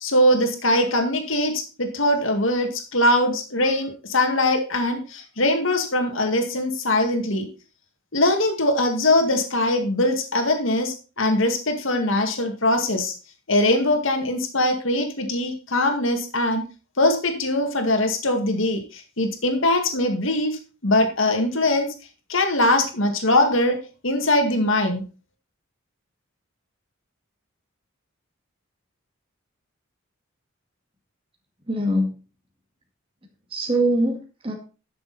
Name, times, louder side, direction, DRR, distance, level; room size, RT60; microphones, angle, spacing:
voice 1, 0.0-7.5 8.1-13.1 13.5-16.6 17.0-21.9 22.3-25.0, left 1 dB, 70° left, 5 dB, 2.1 m, -22 dB
voice 2, 31.7-32.2 33.5-34.5, right 1 dB, 25° right, 1 dB, 2.2 m, -23 dB
11.5 x 6.7 x 4.2 m, 0.34 s
head